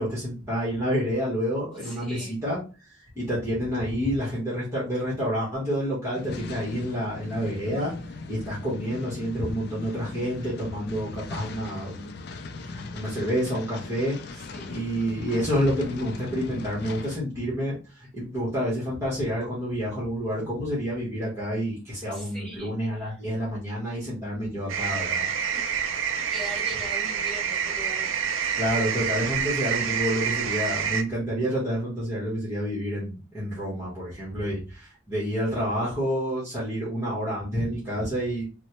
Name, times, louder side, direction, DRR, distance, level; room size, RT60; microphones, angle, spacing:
voice 1, 0.0-2.6 2.9-7.9 8.3-12.2 12.6-25.3 28.6-38.4, equal, 15° right, -8 dB, 1.0 m, -29 dB
voice 2, 1.7-2.4 14.3-15.1 22.1-23.2 24.8-24.9 25.5-28.2, equal, 5° left, -8 dB, 1.6 m, -42 dB
sound 1, 6.1-17.2, left 3 dB, 50° left, 0.3 m, -39 dB
sound 2, 24.7-31.0, right 7 dB, 75° right, 0.4 m, -27 dB
3.1 x 2.1 x 2.9 m, 0.33 s
head